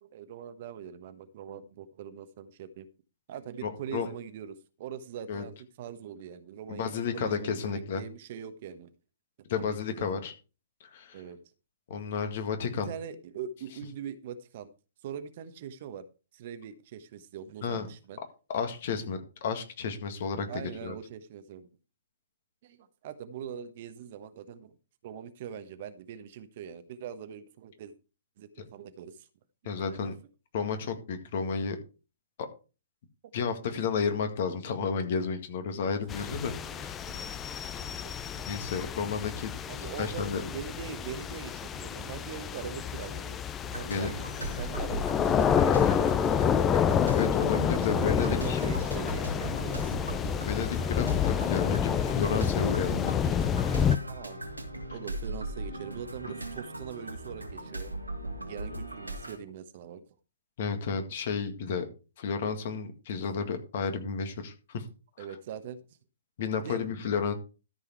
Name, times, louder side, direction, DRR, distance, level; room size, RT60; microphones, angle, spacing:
voice 1, 0.0-2.9 3.3-8.9 9.5-10.1 11.1-11.5 12.7-14.7 15.0-16.0 16.3-18.2 20.5-21.7 22.6-24.7 25.0-27.9 28.4-29.3 29.8-30.0 33.2-33.3 35.7-35.8 36.5-37.3 37.7-38.5 39.7-43.4 43.6-44.1 44.4-46.8 47.5-50.0 54.1-54.5 54.9-57.9 58.5-60.0 65.2-65.8 66.6-66.8, right 8 dB, 45° right, 11 dB, 1.1 m, -42 dB
voice 2, 3.6-4.1 5.3-5.4 6.7-8.0 9.5-10.3 10.9-11.2 11.9-12.9 17.6-17.9 18.5-20.9 28.6-28.7 29.7-30.1 30.5-31.8 32.4-32.5 33.3-37.0 38.5-39.5 39.8-40.4 43.9-44.1 47.1-48.6 50.5-53.2 60.6-61.9 62.2-64.8 65.2-65.3 66.4-67.3, left 6 dB, 50° left, 7 dB, 1.9 m, -32 dB
sound 1, 36.1-54.0, left 8 dB, 20° left, 0.6 m, -29 dB
sound 2, 43.7-59.4, right 1 dB, 90° right, 2.5 m, -39 dB
13.5 x 5.5 x 4.5 m, 0.33 s
figure-of-eight pair, 120°, 0 cm